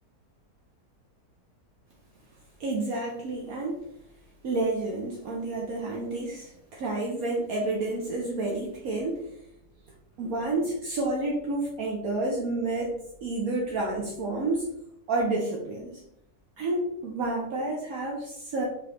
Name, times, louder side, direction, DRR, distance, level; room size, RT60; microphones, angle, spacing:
voice 1, 2.6-3.8 4.4-9.2 10.2-14.7 15.1-16.0 16.6-18.6, right 2 dB, 65° right, -2 dB, 1.1 m, -30 dB
3.8 x 3.0 x 3.2 m, 0.77 s
omnidirectional pair, 1.7 m